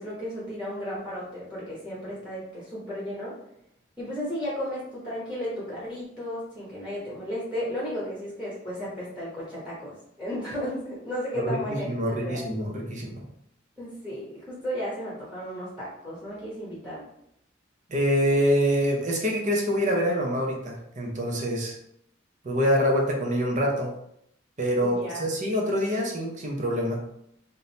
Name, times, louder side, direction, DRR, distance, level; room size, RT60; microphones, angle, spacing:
voice 1, 0.0-3.3 4.0-12.4 13.8-17.0 24.8-25.2, equal, 5° right, -7 dB, 1.3 m, -34 dB
voice 2, 11.8-13.2 17.9-21.8 22.4-23.9 24.6-27.0, equal, 35° right, 0 dB, 0.8 m, -25 dB
3.8 x 2.6 x 4.0 m, 0.74 s
head